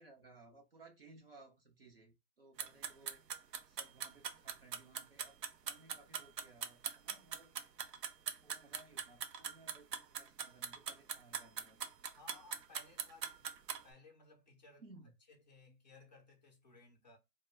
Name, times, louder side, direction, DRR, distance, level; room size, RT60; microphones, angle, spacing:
voice 1, 0.0-3.2 3.7-5.3 5.6-7.5 8.4-11.9 14.8-15.1, right 3 dB, 40° right, 0.6 m, -60 dB
sound 1, 2.6-13.8, right 7 dB, 80° right, 0.6 m, -41 dB
voice 2, 12.1-13.5 13.8-14.8 15.3-17.2, left 3 dB, 30° left, 0.5 m, -60 dB
2.2 x 2.1 x 3.2 m
hypercardioid pair, 160°, 48 cm